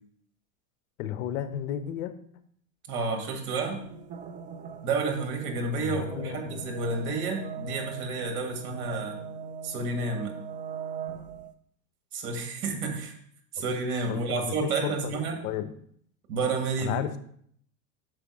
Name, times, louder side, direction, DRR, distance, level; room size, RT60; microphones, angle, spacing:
voice 1, 1.0-2.1 5.8-6.7 14.1-15.1 15.4-15.7 16.8-17.2, left 10 dB, 60° left, 11 dB, 0.8 m, -33 dB
voice 2, 2.9-3.8 4.8-9.2 9.6-10.4 12.1-13.1 13.5-15.4 16.3-17.0, right 3 dB, 65° right, 4 dB, 1.9 m, -30 dB
sound 1, 3.8-11.5, right 6 dB, 20° right, 0.4 m, -40 dB
6.1 x 5.0 x 4.7 m, 0.64 s
hypercardioid pair, 105°, 45 cm